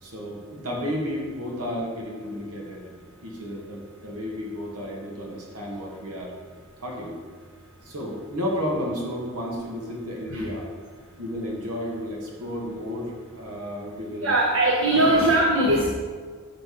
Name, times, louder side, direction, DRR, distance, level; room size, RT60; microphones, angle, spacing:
voice 1, 0.0-2.8 3.2-6.3 6.8-7.2 7.8-10.7 11.2-14.3 14.9-15.0, equal, 90° right, -2 dB, 2.1 m, -32 dB
voice 2, 14.2-15.9, right 1 dB, 60° right, -2 dB, 1.1 m, -20 dB
9.0 x 4.1 x 6.7 m, 1.5 s
head